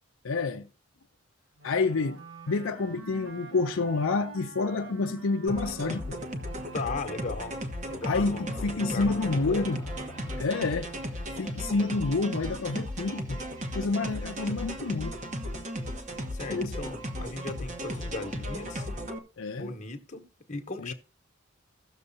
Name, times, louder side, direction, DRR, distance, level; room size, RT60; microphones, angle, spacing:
voice 1, 0.2-0.7 1.6-2.2 2.5-6.2 8.0-9.8 10.4-10.9 11.4-13.4 13.7-15.2 16.5-16.7 19.4-19.7 20.8-20.9, left 3 dB, 70° left, 0.5 m, -28 dB
Wind instrument woodwind instrument, 1.6-7.3, right 2 dB, 75° right, 1.5 m, -47 dB
sound 1, 5.5-19.2, equal, 35° right, 1.0 m, -36 dB
voice 2, 6.7-7.6 7.9-9.7 16.3-18.9 19.6-20.9, left 3 dB, 35° left, 1.1 m, -37 dB
sound 2, 9.1-12.5, left 1 dB, 10° left, 0.9 m, -48 dB
16.0 x 6.7 x 2.6 m
head